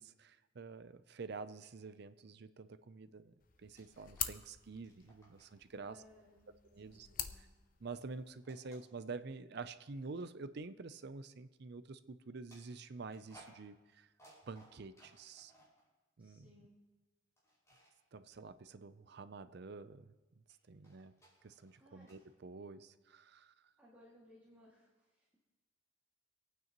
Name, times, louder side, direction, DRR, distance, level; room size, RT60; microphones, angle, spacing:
voice 1, 0.0-6.0 6.7-7.1 7.8-14.1 14.5-15.5 16.2-16.5 18.1-20.4 20.7-21.1 21.4-23.5, right 4 dB, 55° right, 13 dB, 0.5 m, -48 dB
sound 1, 3.4-8.4, left 10 dB, 45° left, 0.6 m, -46 dB
sound 2, 3.7-4.4 4.7-5.6 6.1-7.6 8.4-9.5 10.1-10.3 12.5-15.9 17.4-18.0 20.5-22.3, right 1 dB, 15° left, 5.1 m, -64 dB
voice 2, 5.8-7.5 16.2-16.8 20.8-21.0 21.8-22.2 23.8-25.4, left 1 dB, 10° right, -7 dB, 2.1 m, -64 dB
27.0 x 9.2 x 3.0 m, 1.2 s
head